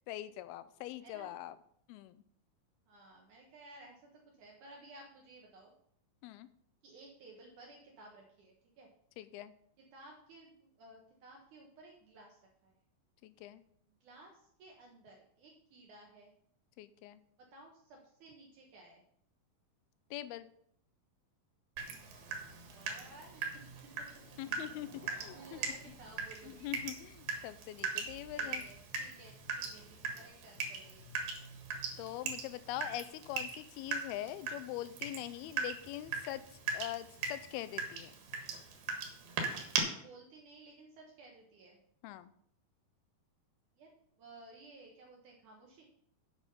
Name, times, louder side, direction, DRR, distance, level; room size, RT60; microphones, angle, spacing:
voice 1, 0.1-1.6 1.9-2.2 6.2-6.5 9.2-9.5 13.2-13.6 16.8-17.2 20.1-20.5 24.4-25.8 26.4-28.7 32.0-38.1 42.0-42.3, left 14 dB, 90° left, 14 dB, 2.5 m, -43 dB
voice 2, 1.0-1.3 2.9-5.7 6.8-8.9 9.8-12.7 14.0-16.3 17.5-19.0 22.6-23.4 24.0-24.1 25.1-26.8 28.3-31.0 39.8-41.8 43.8-43.9 44.2-45.8, right 2 dB, 65° right, -1 dB, 2.5 m, -56 dB
Water tap faucet / Drip, 21.8-39.8, right 5 dB, 90° right, 3.5 m, -40 dB
9.2 x 7.1 x 5.3 m, 0.67 s
omnidirectional pair, 4.3 m